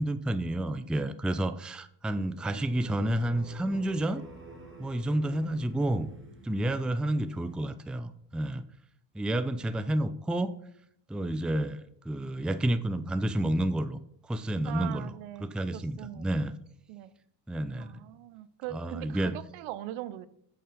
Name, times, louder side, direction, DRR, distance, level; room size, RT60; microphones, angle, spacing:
voice 1, 0.0-4.2 4.8-6.1 6.4-8.6 9.1-10.5 11.1-15.1 15.4-16.5 17.5-18.0 18.7-19.4, right 1 dB, ahead, 11 dB, 0.4 m, -30 dB
sound 1, 2.4-7.6, right 3 dB, 25° right, 2.0 m, -49 dB
voice 2, 14.7-16.3 16.9-17.1 17.8-20.3, right 14 dB, 70° right, 16 dB, 0.7 m, -41 dB
7.5 x 5.5 x 5.1 m, 0.71 s
hypercardioid pair, 70°, 48 cm